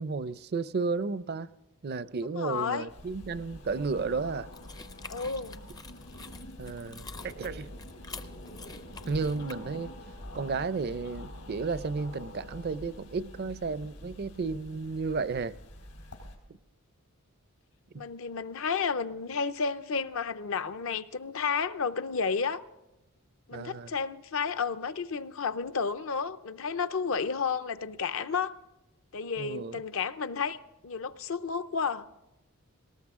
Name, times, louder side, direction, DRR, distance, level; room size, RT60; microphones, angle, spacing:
voice 1, 0.0-1.5 1.8-4.5 6.6-7.7 9.1-9.9 10.3-15.5 17.9-18.0 23.5-23.9 29.4-29.8, right 4 dB, 45° right, 0.4 m, -33 dB
voice 2, 2.3-2.9 5.1-5.6 18.0-22.6 23.5-28.5 29.1-32.1, left 5 dB, 60° left, 0.6 m, -32 dB
sound 1, 2.9-16.4, left 1 dB, 85° left, 4.0 m, -46 dB
sound 2, 4.5-9.5, left 4 dB, 15° left, 0.4 m, -47 dB
19.0 x 18.5 x 3.6 m
head